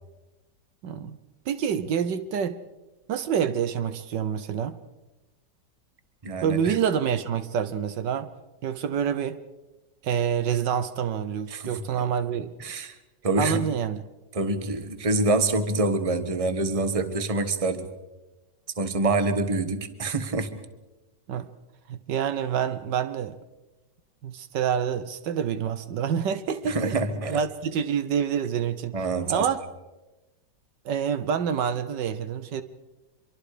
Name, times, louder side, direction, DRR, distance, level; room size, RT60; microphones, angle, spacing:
voice 1, 0.8-1.2 1.5-2.6 3.1-4.8 6.4-8.3 8.6-9.4 10.0-12.5 13.4-14.0 21.3-21.5 21.9-23.3 24.2-27.0 27.3-28.9 29.3-29.6 30.8-32.6, right 8 dB, 75° right, 11 dB, 1.6 m, -27 dB
voice 2, 6.2-6.8 11.5-11.8 12.6-12.9 13.2-13.7 14.3-17.9 18.8-20.6 26.6-27.4 28.9-29.5, right 2 dB, 20° right, 10 dB, 1.2 m, -26 dB
25.5 x 23.5 x 5.0 m, 1.1 s
omnidirectional pair, 1.9 m